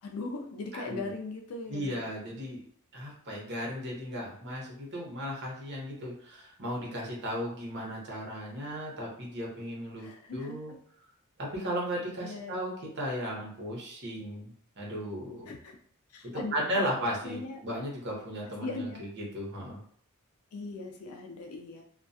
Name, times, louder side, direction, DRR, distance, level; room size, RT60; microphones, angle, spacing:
voice 1, 0.0-2.1 10.0-10.8 12.2-12.5 15.5-15.8 16.1-16.9 17.2-17.6 18.6-19.1 20.5-21.8, left 3 dB, 70° left, 2 dB, 0.4 m, -39 dB
voice 2, 0.7-1.1 1.7-2.6 2.9-10.7 11.4-15.5 16.2-19.8, equal, 50° right, -2 dB, 0.9 m, -36 dB
2.3 x 2.2 x 2.6 m, 0.62 s
head